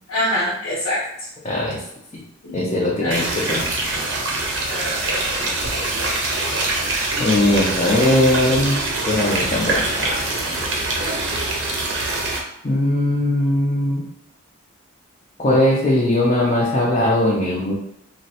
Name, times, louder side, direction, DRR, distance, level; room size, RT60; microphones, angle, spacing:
voice 1, 0.1-1.0 2.4-2.5 3.0-3.1 4.7-5.9, left 1 dB, 85° left, -7 dB, 0.8 m, -25 dB
voice 2, 1.4-1.8 2.1-2.2 2.5-3.7 7.2-8.8 9.1-10.2 12.6-14.0 15.4-17.7, left 1 dB, 30° left, -5 dB, 0.4 m, -19 dB
sound 1, 3.1-12.4, right 2 dB, 60° right, 0.6 m, -24 dB
sound 2, 5.6-7.3 8.3-11.6, equal, 20° right, 0.7 m, -36 dB
3.0 x 2.0 x 2.7 m, 0.79 s
head